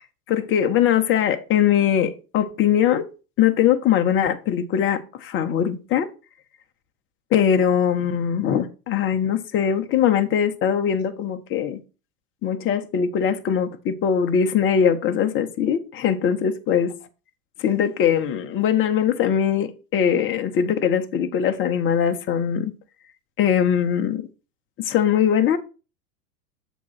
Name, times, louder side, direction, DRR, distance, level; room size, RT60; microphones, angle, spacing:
voice 1, 0.3-3.1 3.4-6.1 7.3-11.8 12.4-16.9 17.6-22.7 23.4-24.2 24.8-25.6, left 8 dB, 25° left, 0.7 m, -21 dB
7.3 x 3.1 x 5.7 m
hypercardioid pair, 95°, 49 cm